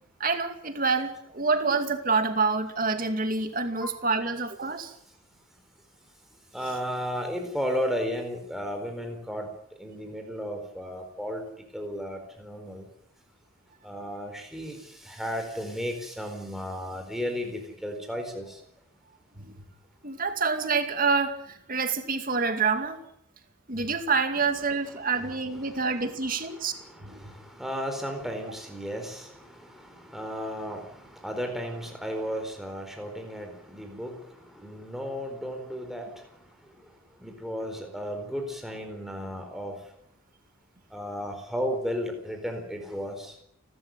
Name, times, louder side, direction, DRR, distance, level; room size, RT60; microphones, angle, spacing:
voice 1, 0.2-4.9 19.4-19.5 20.0-23.0 23.7-26.7 27.0-27.2, right 4 dB, 40° right, 7 dB, 2.4 m, -27 dB
voice 2, 6.5-9.5 9.8-11.4 11.7-12.8 13.8-14.8 15.0-18.6 25.7-26.1 26.7-34.1 34.5-36.1 37.2-39.8 40.9-43.3, equal, ahead, 4 dB, 4.3 m, -34 dB
29.0 x 13.0 x 9.2 m, 0.73 s
head